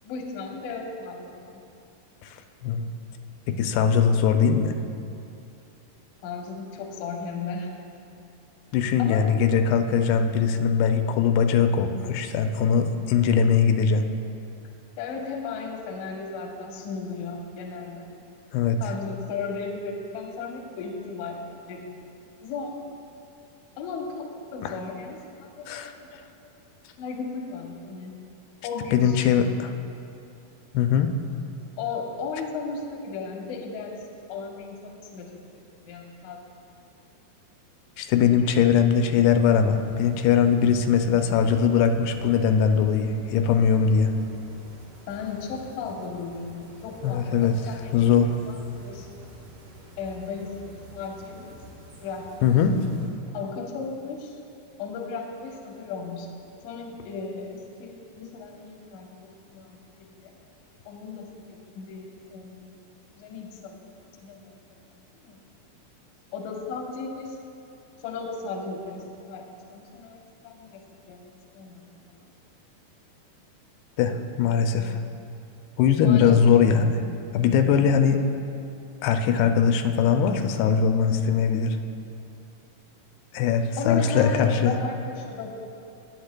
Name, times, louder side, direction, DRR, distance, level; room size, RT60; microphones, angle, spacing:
voice 1, 0.0-1.6 6.2-7.7 9.0-9.4 15.0-18.1 18.8-22.1 22.4-22.8 23.8-26.5 27.0-28.1 28.6-29.2 31.8-36.6 38.4-38.5 45.1-49.3 50.0-51.6 52.0-52.6 53.3-54.4 54.8-56.3 56.6-60.4 60.9-62.8 63.1-64.5 64.9-65.4 66.3-67.4 68.0-69.4 69.7-71.3 71.5-72.3 76.0-76.6 83.8-85.5, left 4 dB, 70° left, 1 dB, 2.0 m, -36 dB
voice 2, 3.5-4.7 8.7-14.1 18.5-18.8 24.6-24.7 25.7-25.9 28.9-29.7 30.7-31.1 38.0-44.1 47.0-47.6 47.9-48.3 52.4-52.8 74.0-75.0 75.8-77.0 77.3-78.2 79.0-81.8 83.3-84.7, left 7 dB, 90° left, 6 dB, 2.6 m, -21 dB
sound 1, 39.3-53.1, equal, 55° right, 2.1 m, -48 dB
19.5 x 8.0 x 2.2 m, 2.6 s
omnidirectional pair, 4.5 m